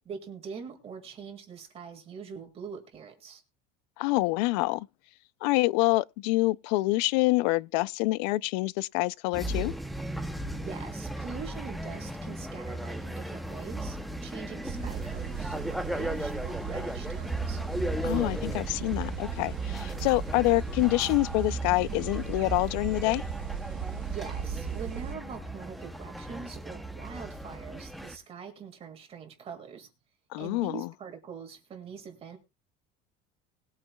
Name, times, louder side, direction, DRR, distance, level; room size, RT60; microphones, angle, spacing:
voice 1, 0.1-3.4 10.5-17.6 19.7-20.1 24.0-29.9 30.4-32.4, right 6 dB, 30° right, 2.0 m, -43 dB
voice 2, 4.0-4.9 5.4-9.7 18.0-23.2 30.3-30.9, left 21 dB, 90° left, 0.4 m, -26 dB
sound 1, 9.3-28.2, right 1 dB, ahead, 0.7 m, -36 dB
sound 2, 14.6-25.1, right 10 dB, 70° right, 0.9 m, -39 dB
20.0 x 8.9 x 2.3 m
cardioid pair, 170°, 21 cm